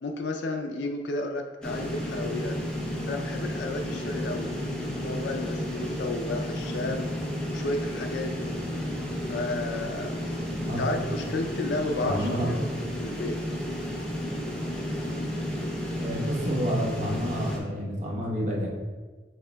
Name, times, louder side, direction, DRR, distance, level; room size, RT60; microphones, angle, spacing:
voice 1, 0.0-2.6 3.1-4.5 4.9-7.1 7.5-8.6 9.3-10.1 10.8-12.7 13.0-13.4, left 2 dB, 80° left, 3 dB, 0.4 m, -32 dB
sound 1, 1.6-17.6, equal, 5° left, 0.7 m, -32 dB
voice 2, 12.0-12.5 15.9-18.7, equal, 45° right, -2 dB, 1.0 m, -29 dB
6.4 x 3.3 x 2.2 m, 1.3 s
head